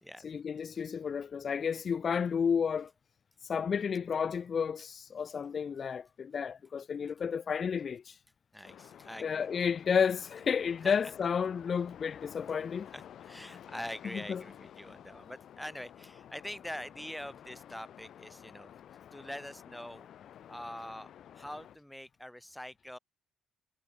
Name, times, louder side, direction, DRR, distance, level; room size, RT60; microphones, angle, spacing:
voice 1, 0.2-2.9 3.4-8.2 9.2-12.9 14.1-14.4, left 6 dB, 40° left, 0.4 m, -31 dB
voice 2, 8.5-9.5 10.8-11.0 12.9-18.7 19.1-20.1 20.5-23.0, left 1 dB, 5° left, 1.0 m, -44 dB
sound 1, 8.6-21.8, left 10 dB, 60° left, 1.0 m, -52 dB
cardioid pair, 110°, 0 cm